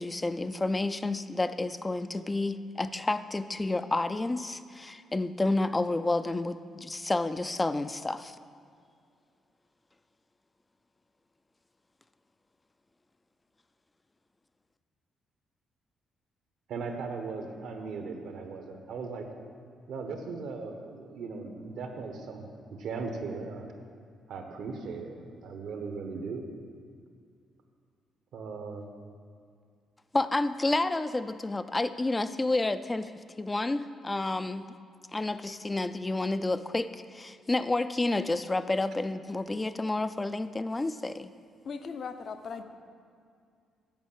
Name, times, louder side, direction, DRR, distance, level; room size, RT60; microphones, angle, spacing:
voice 1, 0.0-8.4 30.1-33.1 33.4-34.7 35.1-41.3, left 2 dB, 20° left, 12 dB, 0.4 m, -30 dB
voice 2, 16.7-19.2 19.9-22.5 22.8-23.7 24.3-26.4 28.3-28.9, right 4 dB, 75° right, 4 dB, 1.2 m, -38 dB
voice 3, 41.6-42.6, left 5 dB, 55° left, 8 dB, 0.7 m, -38 dB
9.4 x 5.3 x 7.5 m, 2.3 s
cardioid pair, 90°, 0 cm